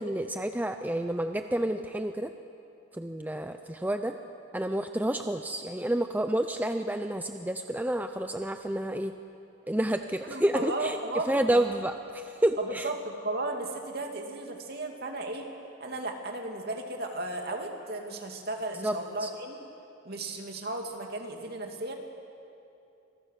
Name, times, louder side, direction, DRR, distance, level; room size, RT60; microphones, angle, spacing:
voice 1, 0.0-2.3 2.9-4.1 4.5-9.1 9.7-11.0 11.3-12.8 18.8-18.9 19.2-19.3, right 1 dB, 10° right, 7 dB, 0.6 m, -29 dB
voice 2, 10.2-11.6 12.6-15.5 15.8-19.6 20.0-21.9, right 2 dB, 50° right, 2 dB, 2.7 m, -35 dB
26.5 x 22.5 x 6.7 m, 2.7 s
head